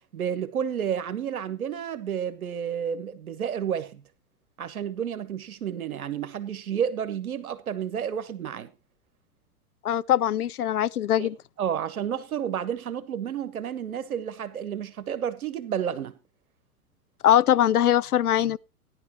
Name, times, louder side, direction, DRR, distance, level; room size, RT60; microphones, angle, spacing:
voice 1, 0.1-4.0 4.6-8.7 11.2-11.3 11.6-16.2, right 8 dB, 65° right, 1.4 m, -31 dB
voice 2, 9.8-11.4 17.2-18.6, left 11 dB, 75° left, 0.6 m, -22 dB
14.0 x 11.0 x 3.1 m
figure-of-eight pair, 100°, 46 cm